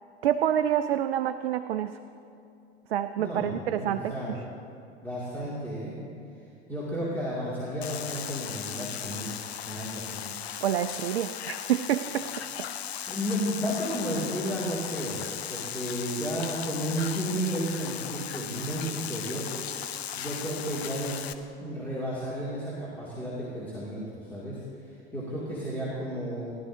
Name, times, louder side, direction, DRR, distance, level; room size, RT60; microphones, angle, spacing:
voice 1, 0.2-2.0 2.9-4.4 10.6-12.3, right 10 dB, 65° right, 11 dB, 0.5 m, -27 dB
voice 2, 3.2-4.4 5.0-6.0 6.7-9.4 9.7-10.2 13.1-15.2 15.5-19.5 20.2-21.2 21.6-26.5, equal, 5° left, -8 dB, 2.2 m, -33 dB
sound 1, 7.8-21.3, left 9 dB, 70° left, 0.7 m, -37 dB
18.0 x 11.5 x 2.7 m, 2.6 s
figure-of-eight pair, 85°, 33 cm